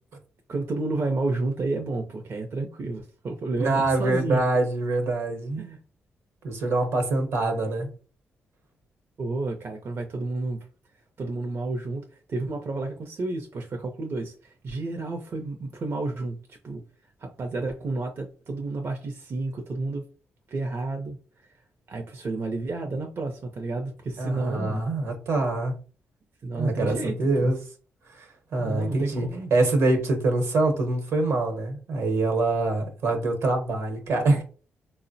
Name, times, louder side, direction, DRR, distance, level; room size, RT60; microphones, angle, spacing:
voice 1, 0.5-4.4 5.6-5.8 9.2-10.7 11.2-16.4 16.6-16.8 17.2-20.1 20.5-21.2 21.9-24.8 26.4-27.5 28.6-29.5, right 2 dB, 55° right, 0.5 m, -31 dB
voice 2, 3.5-5.7 6.4-7.9 24.2-25.7 26.6-27.6 28.1-28.3 28.5-34.4, right 2 dB, 75° right, 0.8 m, -25 dB
3.7 x 2.0 x 2.6 m
supercardioid pair, 50°, 5 cm